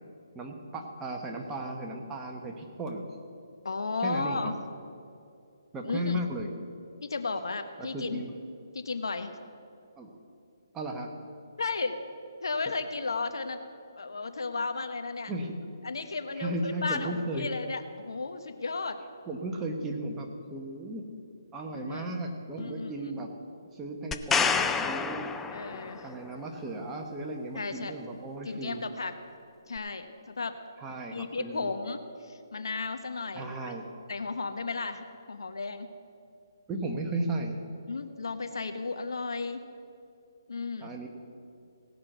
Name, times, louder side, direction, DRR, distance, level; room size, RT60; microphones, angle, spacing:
voice 1, 0.3-3.0 4.0-4.5 5.7-6.5 7.8-8.3 10.0-10.1 10.7-11.1 15.3-15.5 16.3-17.5 19.3-21.0 21.5-23.3 23.7-25.3 26.0-28.8 30.8-31.7 33.3-33.9 36.7-37.6 40.8-41.1, right 1 dB, 10° right, 1 dB, 1.1 m, -35 dB
voice 2, 3.6-4.5 5.8-6.2 7.0-8.2 8.7-9.3 11.6-12.0 12.4-13.6 13.9-15.3 15.8-19.0 21.7-22.1 22.6-23.3 25.5-26.1 27.5-27.9 28.4-29.2 29.7-30.6 31.1-33.6 34.1-35.9 37.9-39.6 40.5-40.9, left 4 dB, 80° left, 8 dB, 1.1 m, -34 dB
sound 1, 24.1-26.1 29.8-29.9, left 5 dB, 5° left, 0.3 m, -28 dB
17.5 x 5.8 x 7.9 m, 2.5 s
hypercardioid pair, 160°, 2 cm